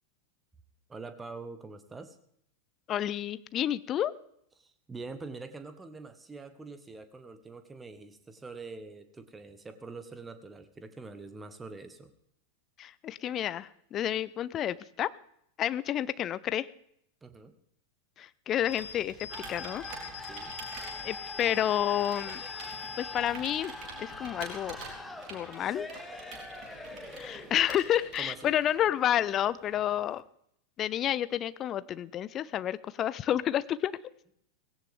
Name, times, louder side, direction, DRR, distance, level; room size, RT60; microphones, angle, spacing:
voice 1, 0.9-2.2 4.6-12.1 17.2-17.5 20.2-20.5 28.1-28.5, right 3 dB, 15° right, 10 dB, 1.4 m, -44 dB
voice 2, 2.9-4.1 12.8-15.1 15.6-16.7 18.2-19.1 19.5-19.8 21.0-22.4 23.0-23.7 24.0-24.8 25.3-25.9 27.2-30.2 30.8-34.0, left 11 dB, 30° left, 17 dB, 0.6 m, -30 dB
Computer keyboard, 18.5-28.8, right 5 dB, 40° right, 3.9 m, -48 dB
sound 1, 18.6-25.1, left 6 dB, 55° left, 2.1 m, -44 dB
sound 2, 19.3-30.2, left 2 dB, 10° left, 1.4 m, -45 dB
18.0 x 16.5 x 3.6 m, 0.71 s
figure-of-eight pair, 90°, 0 cm